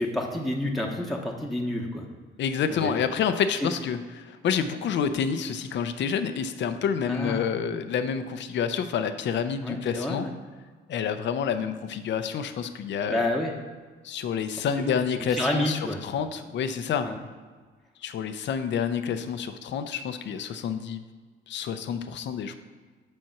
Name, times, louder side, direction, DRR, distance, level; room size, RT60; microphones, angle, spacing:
voice 1, 0.0-2.1 2.7-2.9 3.6-3.7 7.1-7.6 9.6-10.3 13.1-13.5 14.8-15.0 15.3-16.0 17.0-17.2, left 1 dB, ahead, -1 dB, 1.1 m, -29 dB
voice 2, 2.4-10.3 10.9-13.2 14.0-17.1 18.0-21.0 21.5-22.5, left 7 dB, 65° left, 9 dB, 0.6 m, -28 dB
7.7 x 4.3 x 5.8 m, 1.4 s
cardioid pair, 90°, 20 cm